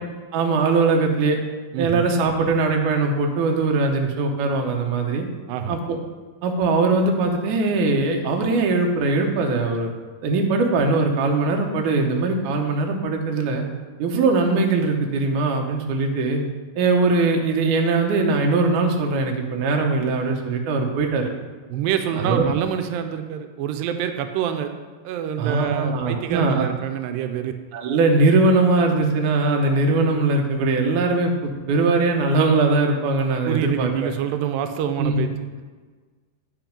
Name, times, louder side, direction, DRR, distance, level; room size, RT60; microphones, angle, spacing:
voice 1, 0.3-1.4 1.8-5.3 5.7-6.0 6.4-9.9 10.2-13.7 14.0-16.4 16.8-21.3 22.1-22.4 25.4-26.7 27.7-34.1 35.0-35.3, right 3 dB, 70° right, 2 dB, 2.2 m, -21 dB
voice 2, 1.7-2.0 5.5-5.8 21.7-24.7 25.1-27.5 33.5-35.3, right 9 dB, 90° right, 8 dB, 2.3 m, -26 dB
9.0 x 5.4 x 5.2 m, 1.4 s
omnidirectional pair, 3.9 m